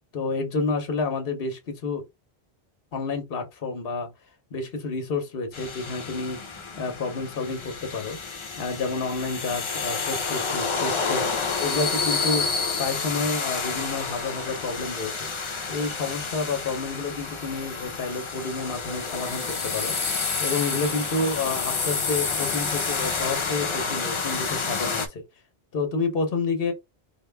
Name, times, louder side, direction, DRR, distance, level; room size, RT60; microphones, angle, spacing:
voice 1, 0.1-2.0 2.9-4.1 4.5-6.4 6.8-8.2 8.6-11.3 11.6-12.5 12.8-15.1 15.7-19.9 20.4-25.2 25.7-26.7, left 3 dB, 65° left, 1.1 m, -29 dB
sound 1, 5.5-25.1, left 4 dB, 35° left, 0.6 m, -29 dB
4.7 x 2.2 x 3.3 m
omnidirectional pair, 1.1 m